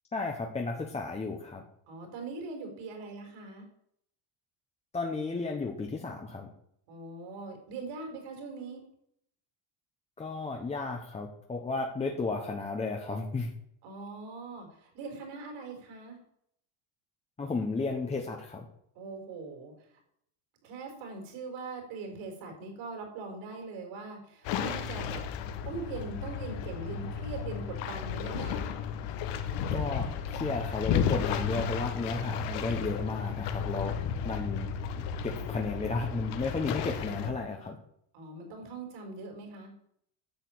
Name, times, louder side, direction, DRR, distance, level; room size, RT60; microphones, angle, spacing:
voice 1, 0.1-1.6 4.9-6.5 10.2-13.5 17.4-18.6 29.7-34.0 34.2-34.7 35.0-37.8, left 3 dB, 15° left, 1 dB, 1.0 m, -33 dB
voice 2, 1.9-3.7 6.9-8.8 13.8-16.2 18.9-19.7 20.6-25.2 25.6-28.6 38.1-39.7, right 3 dB, 75° right, 2 dB, 4.8 m, -41 dB
sound 1, 24.4-37.3, left 7 dB, 65° left, 1.4 m, -33 dB
10.5 x 6.7 x 8.5 m, 0.71 s
cardioid pair, 165°, 47 cm